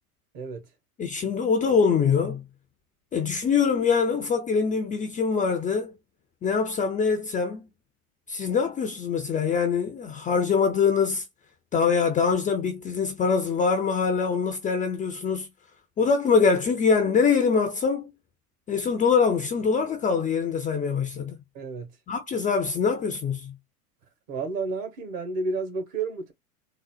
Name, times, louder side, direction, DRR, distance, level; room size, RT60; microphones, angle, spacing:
voice 1, 0.3-0.7 21.5-22.0 24.3-26.3, right 3 dB, 50° right, 1.6 m, -31 dB
voice 2, 1.0-2.4 3.1-5.9 6.4-7.7 8.3-11.3 11.7-15.5 16.0-18.1 18.7-21.4 22.1-23.5, left 5 dB, 20° left, 0.5 m, -24 dB
3.9 x 2.1 x 2.3 m
hypercardioid pair, 105°, 44 cm